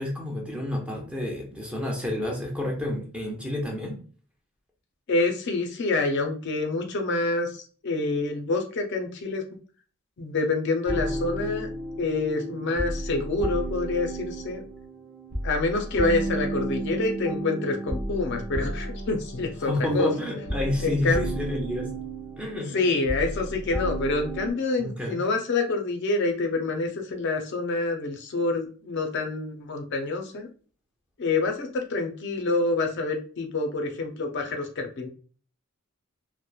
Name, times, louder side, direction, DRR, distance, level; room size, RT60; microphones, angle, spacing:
voice 1, 0.0-4.0 19.6-21.9 22.4-22.8 24.8-25.2, left 1 dB, 5° right, 0 dB, 0.6 m, -30 dB
voice 2, 5.1-9.4 10.2-11.7 12.0-14.6 15.4-20.1 20.8-21.2 22.7-30.5 31.2-35.1, left 3 dB, 55° left, 4 dB, 0.4 m, -27 dB
sound 1, 10.9-24.5, right 1 dB, 40° right, 0.7 m, -32 dB
2.9 x 2.0 x 2.2 m, 0.41 s
head